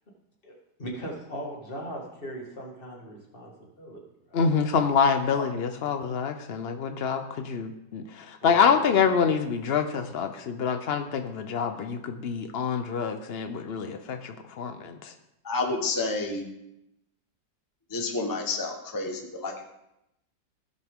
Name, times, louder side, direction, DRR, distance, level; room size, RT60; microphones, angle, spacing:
voice 1, 0.4-3.5 3.8-4.0 4.3-4.5 8.4-9.0, equal, 30° left, -1 dB, 2.0 m, -39 dB
voice 2, 4.3-15.1, left 6 dB, 80° left, 7 dB, 0.5 m, -26 dB
voice 3, 15.4-16.5 17.9-19.6, left 3 dB, 15° left, 2 dB, 0.9 m, -29 dB
16.5 x 6.6 x 3.6 m, 0.86 s
omnidirectional pair, 2.0 m